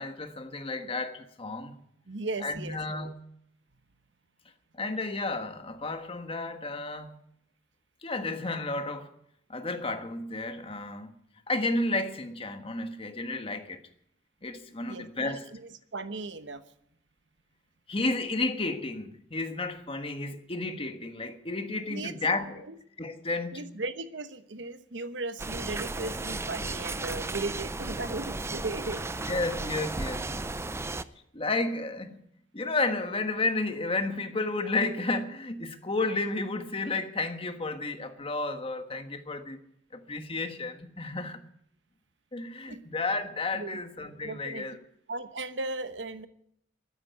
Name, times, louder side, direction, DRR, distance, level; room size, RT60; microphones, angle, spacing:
voice 1, 0.0-1.7 2.4-3.2 4.7-7.1 8.0-9.1 9.5-11.1 11.5-13.8 14.4-15.5 17.9-22.6 23.0-23.6 29.2-30.7 31.3-32.2 32.5-39.6 39.9-41.4 42.3-44.8, left 2 dB, 30° left, 1.4 m, -32 dB
voice 2, 2.1-3.1 14.9-15.6 15.9-16.6 21.9-22.1 22.7-22.8 23.5-29.0 42.7-42.8 43.5-43.8 44.2-44.6 45.1-46.3, right 2 dB, 70° right, 1.1 m, -36 dB
sound 1, 25.4-31.0, right 2 dB, 15° right, 0.5 m, -34 dB
13.5 x 10.5 x 9.4 m
head